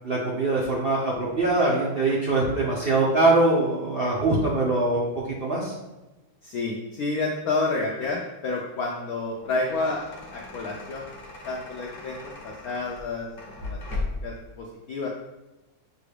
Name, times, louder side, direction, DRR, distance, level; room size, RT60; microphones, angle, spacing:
voice 1, 0.0-5.7, right 2 dB, 65° right, -5 dB, 0.5 m, -23 dB
voice 2, 6.4-11.1 11.4-13.8 14.2-15.1, left 3 dB, 75° left, -1 dB, 0.8 m, -30 dB
sound 1, 9.3-14.4, left 2 dB, 40° left, 0.9 m, -37 dB
6.7 x 2.4 x 3.3 m, 1.0 s
omnidirectional pair, 2.1 m